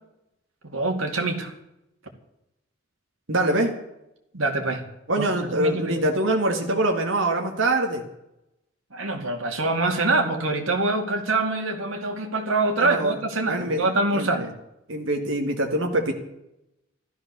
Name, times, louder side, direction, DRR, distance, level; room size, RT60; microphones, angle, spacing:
voice 1, 0.6-1.5 4.3-4.8 5.2-6.1 8.9-14.5, right 2 dB, 90° right, 3 dB, 2.6 m, -25 dB
voice 2, 3.3-3.7 5.1-8.0 12.8-13.2 13.5-14.3 14.9-16.1, right 1 dB, 75° right, 2 dB, 2.1 m, -24 dB
14.5 x 13.0 x 6.9 m, 0.86 s
head